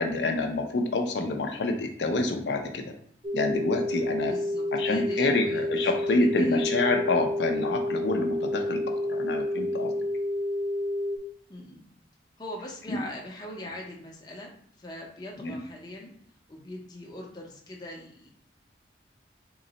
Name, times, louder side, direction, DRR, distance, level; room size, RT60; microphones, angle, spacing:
voice 1, 0.0-2.9 3.3-4.3 4.7-9.9 12.9-13.0 15.4-15.6, left 2 dB, 70° left, 3 dB, 0.5 m, -27 dB
sound 1, 3.2-11.2, left 1 dB, 25° right, 0.4 m, -29 dB
voice 2, 4.2-6.9 11.5-11.9 12.4-14.5 14.8-16.1 16.5-18.3, left 1 dB, 20° left, -1 dB, 0.5 m, -41 dB
3.8 x 2.1 x 3.9 m, 0.64 s
head